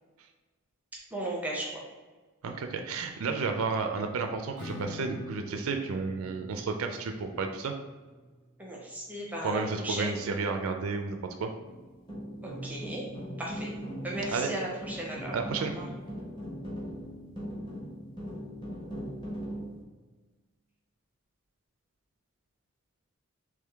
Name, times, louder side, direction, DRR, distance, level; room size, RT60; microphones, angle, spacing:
voice 1, 1.1-1.8 8.6-10.2 12.4-13.1 13.4-13.7 14.0-15.9, right 1 dB, 5° right, -3 dB, 0.6 m, -36 dB
voice 2, 2.4-7.7 9.4-11.5 14.3-14.5 15.3-15.7, right 4 dB, 75° right, 5 dB, 0.4 m, -32 dB
Acoustic guitar / Strum, 4.6-10.0, left 2 dB, 50° left, 0.8 m, -48 dB
sound 1, 11.6-19.8, equal, 20° left, 1.1 m, -39 dB
3.6 x 3.1 x 3.4 m, 1.3 s
head